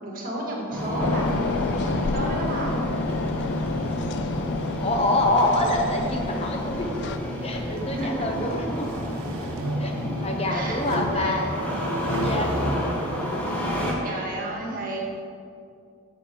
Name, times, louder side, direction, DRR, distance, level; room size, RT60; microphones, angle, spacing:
voice 1, 0.0-2.8 7.9-8.3 10.5-11.5 14.0-15.0, right 1 dB, 40° right, -1 dB, 1.9 m, -32 dB
Engine starting, 0.7-13.9, equal, 5° left, 1.5 m, -30 dB
sound 1, 1.0-7.2, left 4 dB, 55° left, 0.4 m, -30 dB
voice 2, 4.8-6.9 7.4-9.1 9.8-9.9 10.2-11.4 12.0-12.7, left 1 dB, 30° left, 2 dB, 0.8 m, -26 dB
sound 2, 7.5-8.1 8.6-10.2 10.8-12.5, right 2 dB, 80° right, 0.6 m, -35 dB
8.3 x 7.7 x 5.3 m, 2.4 s
head